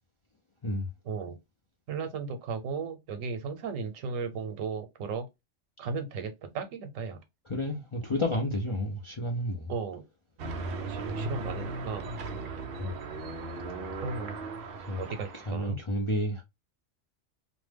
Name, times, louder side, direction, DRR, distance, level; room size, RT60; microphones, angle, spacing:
voice 1, 1.0-1.4 1.9-5.3 5.8-7.2 9.7-10.0 10.9-12.1 14.0-14.4 15.0-15.8, right 5 dB, 85° right, 1.1 m, -35 dB
voice 2, 7.5-9.7 12.8-12.9 14.8-15.0 15.3-16.4, left 1 dB, 45° left, 0.4 m, -31 dB
sound 1, 10.4-15.5, right 3 dB, 60° right, 0.7 m, -37 dB
2.5 x 2.1 x 3.3 m
omnidirectional pair, 1.3 m